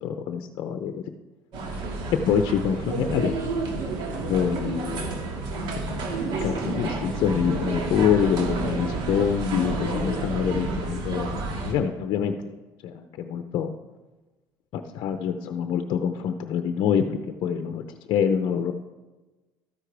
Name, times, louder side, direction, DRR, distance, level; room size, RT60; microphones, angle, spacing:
voice 1, 0.0-1.0 2.3-3.8 4.3-5.1 5.9-6.0 6.4-12.5 12.8-13.7 14.7-17.8 18.1-18.7, left 8 dB, 60° left, 7 dB, 0.6 m, -26 dB
sound 1, 1.5-11.7, right 3 dB, 60° right, 2.1 m, -30 dB
13.0 x 9.8 x 3.4 m, 1.2 s
cardioid pair, 140°, 9 cm